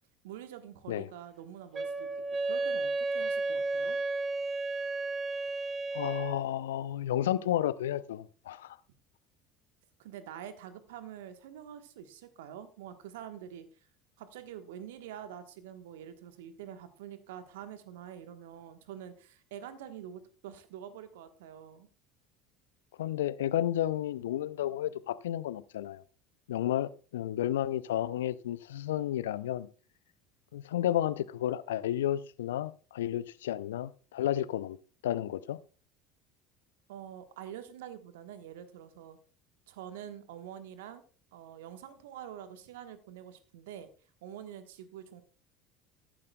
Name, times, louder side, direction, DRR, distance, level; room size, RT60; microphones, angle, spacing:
voice 1, 0.2-4.0 10.0-13.6 14.2-21.9 36.9-39.2 39.7-41.0 41.3-43.9 44.2-45.2, right 10 dB, 70° right, 1.2 m, -46 dB
Wind instrument woodwind instrument, 1.7-6.4, right 3 dB, 30° right, 1.0 m, -32 dB
voice 2, 5.9-8.8 23.0-26.0 26.5-29.7 30.5-34.8 35.0-35.6, left 12 dB, 70° left, 0.5 m, -32 dB
14.0 x 12.0 x 2.3 m
figure-of-eight pair, 65°, 0 cm